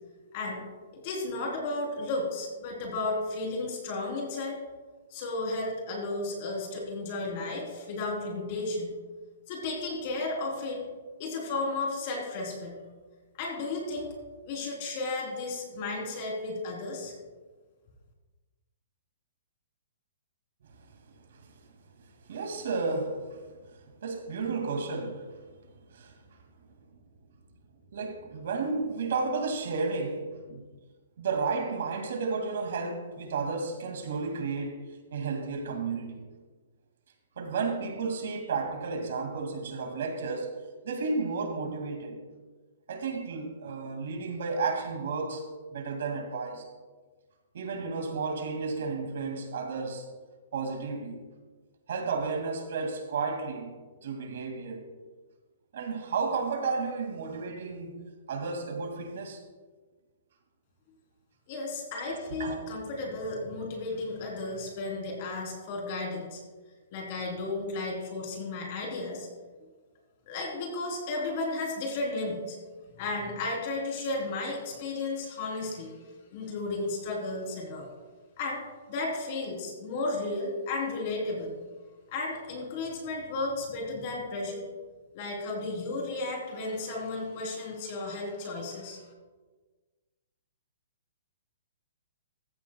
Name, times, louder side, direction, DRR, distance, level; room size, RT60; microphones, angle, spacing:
voice 1, 0.9-4.6 5.1-8.9 9.5-10.8 11.2-12.8 13.4-14.1 14.4-17.1 61.5-66.4 66.9-69.3 70.3-72.6 73.0-75.9 76.3-77.9 78.4-78.6 78.9-81.5 82.1-84.6 85.1-89.0, left 2 dB, 35° left, 3.3 m, -33 dB
voice 2, 22.3-23.4 24.0-25.3 25.9-26.1 27.9-30.6 31.2-34.8 35.1-36.2 37.4-40.6 40.8-42.2 42.9-46.7 47.5-50.1 50.5-51.2 51.9-53.7 54.0-54.9 55.7-58.0 58.3-59.4 62.0-62.6, right 4 dB, 60° right, 2.2 m, -32 dB
15.0 x 14.0 x 2.3 m
hypercardioid pair, 165°, 0 cm